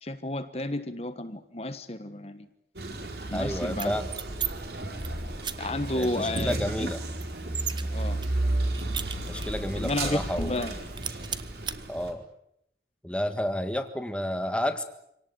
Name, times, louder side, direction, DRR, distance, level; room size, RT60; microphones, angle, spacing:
voice 1, 0.0-2.5 3.3-4.0 5.6-6.9 7.9-8.2 9.8-10.8, left 1 dB, 35° left, 9 dB, 1.4 m, -32 dB
Male speech man speaking, 2.8-12.1, right 1 dB, 65° right, 4.6 m, -33 dB
voice 2, 3.3-4.1 5.9-7.0 9.3-10.5 11.9-12.2 13.0-14.8, equal, 5° left, 7 dB, 1.7 m, -30 dB
sound 1, 3.7-4.5 4.8-5.1 5.4-5.5 6.0-6.1 6.3-7.8 8.2-9.6 10.0-10.1 10.4-10.7 11.0-11.8, right 8 dB, 25° right, 1.0 m, -35 dB
26.5 x 18.5 x 9.6 m, 0.78 s
head